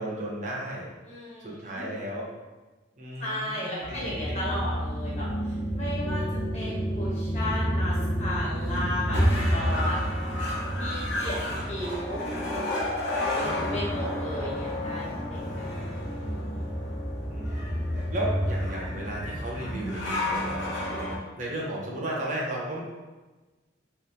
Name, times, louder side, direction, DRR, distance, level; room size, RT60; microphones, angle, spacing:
voice 1, 0.0-0.9 1.4-2.3 3.0-4.5 11.5-11.7 14.3-14.5 17.3-20.7 21.4-22.8, right 1 dB, 40° right, -3 dB, 0.6 m, -35 dB
voice 2, 1.1-1.9 3.2-5.3 5.7-6.2 6.5-9.2 9.5-10.1 10.8-12.2 13.3-16.1, left 1 dB, 35° left, -6 dB, 1.1 m, -34 dB
sound 1, 3.8-21.1, equal, 70° left, 0.9 m, -29 dB
3.0 x 2.8 x 3.4 m, 1.2 s
head